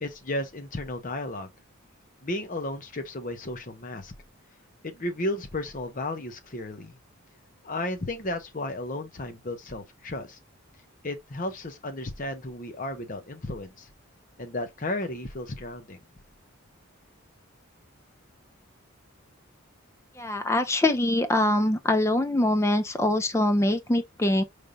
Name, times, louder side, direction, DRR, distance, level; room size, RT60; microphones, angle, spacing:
voice 1, 0.0-1.5 2.2-4.1 4.8-7.0 7.6-10.4 11.0-13.9 14.4-16.0, left 1 dB, 40° left, 0.9 m, -33 dB
voice 2, 20.2-24.4, left 1 dB, 15° left, 0.4 m, -23 dB
5.4 x 3.3 x 2.6 m
head